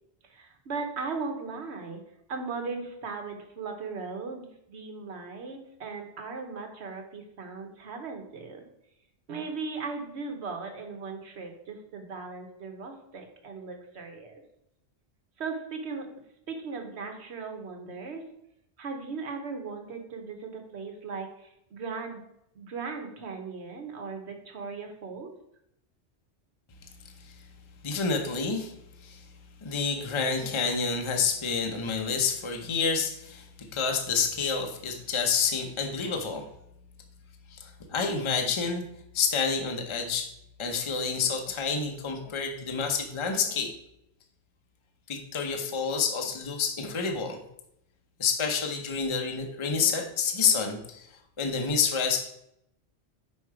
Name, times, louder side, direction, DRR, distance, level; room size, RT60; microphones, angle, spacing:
voice 1, 0.2-2.0 2.3-8.6 9.3-14.4 15.4-16.1 16.5-18.3 18.8-22.2 22.5-25.3, right 4 dB, 70° right, 4 dB, 1.3 m, -38 dB
voice 2, 27.8-28.7 29.0-29.2 29.6-33.5 33.7-36.4 37.5-38.8 39.1-40.3 40.6-43.7 45.1-47.4 48.2-51.1 51.4-52.2, left 5 dB, 30° left, 4 dB, 0.7 m, -28 dB
5.3 x 4.5 x 4.7 m, 0.79 s
omnidirectional pair, 1.2 m